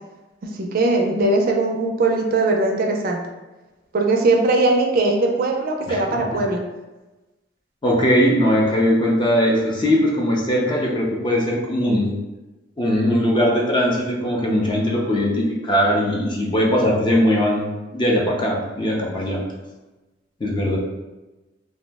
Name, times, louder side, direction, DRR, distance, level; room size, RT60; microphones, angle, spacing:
voice 1, 0.4-3.2 3.9-6.6, right 2 dB, 50° right, 1 dB, 0.4 m, -20 dB
voice 2, 7.8-12.1 12.8-17.6 17.9-19.4 20.4-20.8, equal, 25° left, -2 dB, 0.5 m, -20 dB
2.6 x 2.0 x 3.3 m, 1.1 s
head